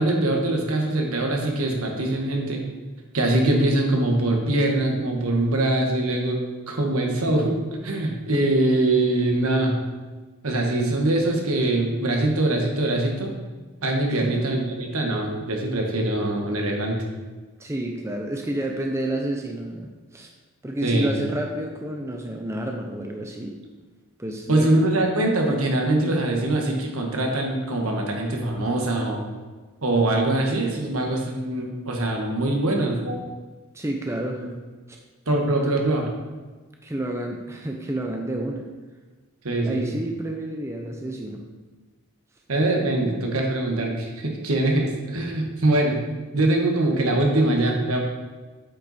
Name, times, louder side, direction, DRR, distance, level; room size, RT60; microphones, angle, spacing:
voice 1, 0.0-2.6 3.1-6.4 6.7-7.6 7.8-9.8 10.4-13.3 13.8-17.0 20.8-21.2 24.5-29.2 29.8-33.2 35.3-36.1 39.4-39.8 42.5-46.0 46.3-48.0, right 2 dB, 75° right, 1 dB, 1.4 m, -23 dB
voice 2, 17.6-20.3 20.6-23.6 24.2-24.7 33.7-34.5 35.6-35.7 36.8-38.7 39.6-41.4, right 1 dB, 10° right, 2 dB, 0.5 m, -30 dB
8.3 x 5.6 x 4.1 m, 1.3 s
head